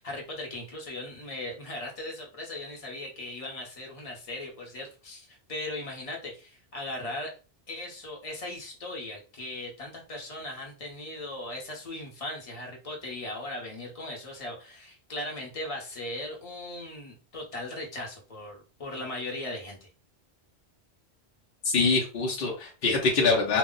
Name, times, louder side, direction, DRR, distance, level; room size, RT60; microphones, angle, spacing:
voice 1, 0.0-7.4 7.7-19.9, left 1 dB, 35° left, -1 dB, 0.9 m, -38 dB
voice 2, 21.6-23.6, left 4 dB, 65° left, -3 dB, 0.9 m, -24 dB
2.3 x 2.1 x 3.7 m, 0.34 s
omnidirectional pair, 1.1 m